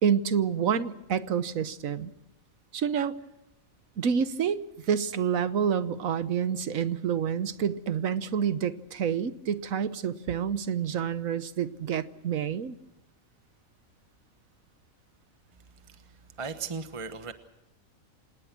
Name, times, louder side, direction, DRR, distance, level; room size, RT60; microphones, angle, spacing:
voice 1, 0.0-2.1 2.7-3.1 4.0-4.6 4.9-12.8, right 7 dB, 75° right, 14 dB, 1.4 m, -28 dB
voice 2, 16.4-17.3, right 5 dB, 25° right, 9 dB, 1.2 m, -36 dB
28.0 x 19.0 x 6.2 m, 0.91 s
omnidirectional pair, 1.4 m